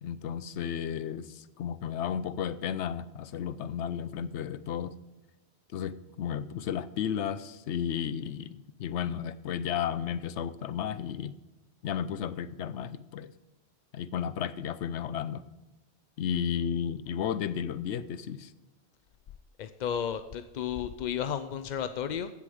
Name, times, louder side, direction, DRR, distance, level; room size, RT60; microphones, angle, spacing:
voice 1, 0.0-4.9 5.7-11.4 11.8-13.3 13.9-15.4 16.2-18.5, left 8 dB, 85° left, 14 dB, 0.9 m, -33 dB
voice 2, 19.6-22.3, left 8 dB, 55° left, 10 dB, 0.5 m, -33 dB
15.5 x 7.1 x 4.9 m, 1.1 s
omnidirectional pair, 1.1 m